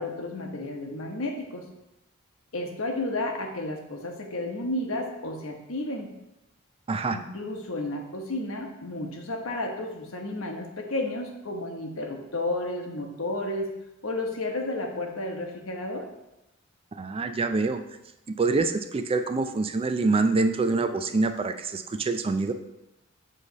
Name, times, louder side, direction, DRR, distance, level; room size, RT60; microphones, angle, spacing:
voice 1, 0.0-1.7 2.5-6.1 7.1-13.7 14.0-16.1, left 2 dB, 75° left, 3 dB, 1.1 m, -32 dB
voice 2, 6.9-7.2 16.9-17.8 18.3-22.5, right 3 dB, 30° right, 9 dB, 0.4 m, -25 dB
7.6 x 3.3 x 5.2 m, 0.91 s
head